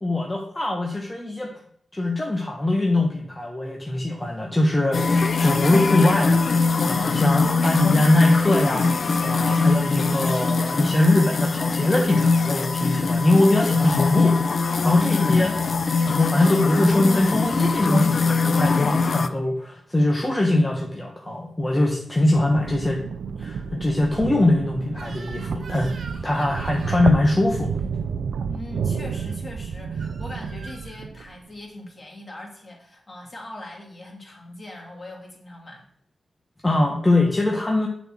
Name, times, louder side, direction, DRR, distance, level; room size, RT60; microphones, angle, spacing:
voice 1, 0.0-1.5 1.9-14.4 14.8-15.6 16.1-23.0 23.4-25.9 26.2-27.7 36.6-37.9, left 1 dB, 20° left, 0 dB, 1.2 m, -22 dB
sound 1, 4.9-19.3, left 4 dB, 60° left, 0.5 m, -21 dB
voice 2, 14.7-15.6 28.4-35.8, left 1 dB, 40° left, -2 dB, 2.7 m, -40 dB
sound 2, 22.2-31.4, right 6 dB, 85° right, 0.5 m, -30 dB
Crying sobbing / Screech, 24.9-27.1 29.0-29.3 30.0-31.0, right 3 dB, 70° right, 1.5 m, -44 dB
6.7 x 4.2 x 6.0 m, 0.67 s
cardioid pair, 55°, 0 cm